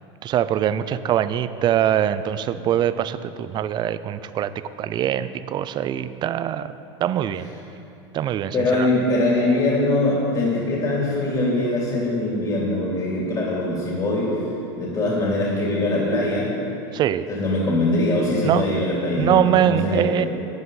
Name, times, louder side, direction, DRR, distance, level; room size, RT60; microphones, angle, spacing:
voice 1, 0.2-4.5 4.8-6.7 7.0-7.5 8.1-8.9 16.9-17.3 18.4-18.7 19.2-20.3, right 10 dB, 30° right, 14 dB, 0.4 m, -23 dB
voice 2, 8.5-14.3 14.8-16.5 17.3-20.3, left 2 dB, 30° left, -4 dB, 2.9 m, -22 dB
13.0 x 9.2 x 4.1 m, 2.8 s
supercardioid pair, 115°, 14 cm